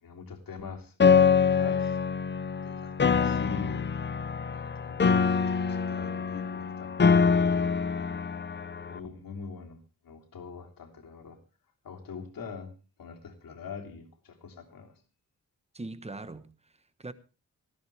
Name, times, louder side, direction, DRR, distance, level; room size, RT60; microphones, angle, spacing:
voice 1, 0.0-2.0 2.6-3.9 4.5-7.2 7.8-8.4 8.9-9.8 10.0-11.4 11.8-12.7 13.0-15.0, left 5 dB, 85° left, 3.3 m, -44 dB
Piano, 1.0-9.0, left 6 dB, 35° left, 0.7 m, -25 dB
voice 2, 15.7-17.1, right 2 dB, 20° right, 1.1 m, -42 dB
18.5 x 14.5 x 3.4 m
wide cardioid pair, 170°, 33 cm